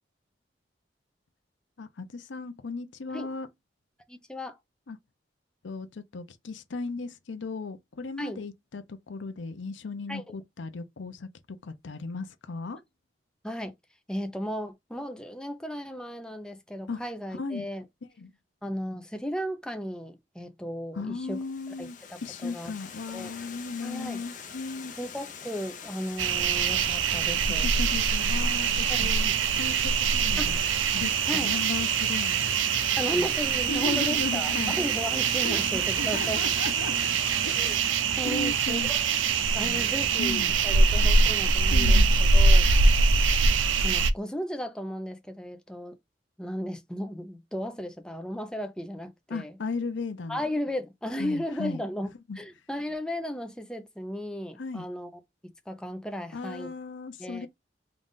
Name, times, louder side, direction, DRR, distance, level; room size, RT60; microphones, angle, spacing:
voice 1, 1.8-3.5 4.9-5.0 5.6-12.8 16.9-17.0 17.4-17.6 18.2-18.3 20.9-22.0 22.2-24.9 27.6-30.6 30.9-32.4 33.1-33.3 33.7-34.7 35.4-37.5 38.2-38.9 39.6-39.8 40.2-40.6 41.7-42.2 49.3-50.4 51.2-51.8 52.3-52.4 54.6-54.9 56.3-57.5, left 3 dB, 80° left, 0.6 m, -36 dB
voice 2, 4.1-4.6 8.2-8.4 10.1-10.2 13.4-13.7 14.1-17.8 18.6-21.4 21.8-22.7 23.1-23.3 23.8-24.2 25.0-27.7 28.9-29.1 30.4-30.6 31.2-31.5 33.0-36.5 37.5-37.8 38.2-39.1 39.5-42.0 42.3-42.7 43.5-46.0 46.4-49.6 50.3-52.1 52.4-55.2 55.7-56.7 57.2-57.5, equal, 5° left, 0.6 m, -35 dB
Water, 21.3-37.8, left 6 dB, 40° left, 0.8 m, -44 dB
sound 1, 26.2-44.1, right 4 dB, 90° right, 0.5 m, -24 dB
3.8 x 2.4 x 3.6 m
head